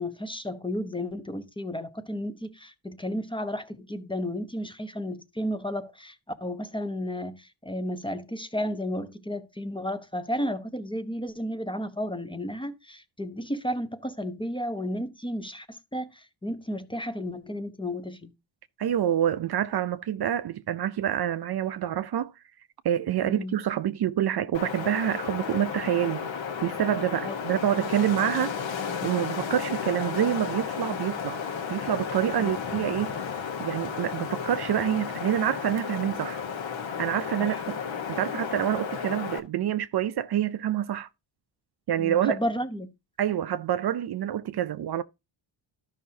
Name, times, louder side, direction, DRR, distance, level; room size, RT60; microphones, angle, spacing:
voice 1, 0.0-18.3 23.2-23.6 27.2-27.4 32.4-32.5 37.4-37.6 42.0-42.9, equal, 10° left, 0.6 m, -33 dB
voice 2, 18.8-22.3 22.8-26.3 26.6-28.5 29.0-31.4 31.7-33.1 33.6-36.4 37.0-37.8 38.1-41.1 41.9-42.4 43.2-45.0, right 10 dB, 55° right, 0.5 m, -27 dB
Wind, 24.5-39.4, left 6 dB, 65° left, 1.2 m, -33 dB
12.5 x 5.7 x 2.7 m
wide cardioid pair, 135°, 48 cm